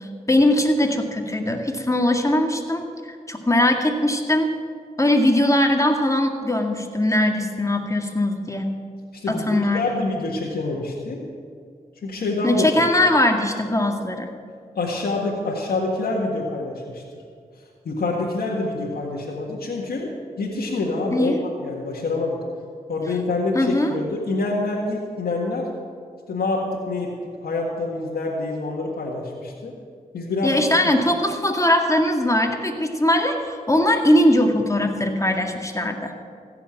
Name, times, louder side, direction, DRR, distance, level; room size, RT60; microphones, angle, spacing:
voice 1, 0.3-2.8 3.3-4.5 5.0-8.7 9.3-10.0 12.4-14.3 21.1-21.4 23.5-23.9 30.4-36.1, left 1 dB, 20° left, 3 dB, 2.0 m, -20 dB
voice 2, 9.1-11.2 12.0-12.6 14.8-17.0 17.9-20.1 20.4-21.3 21.6-22.4 22.9-25.7 26.3-27.1 27.4-29.7 30.1-30.7, left 3 dB, 80° left, -4 dB, 1.7 m, -26 dB
15.5 x 7.0 x 8.9 m, 2.1 s
cardioid pair, 45°, 16 cm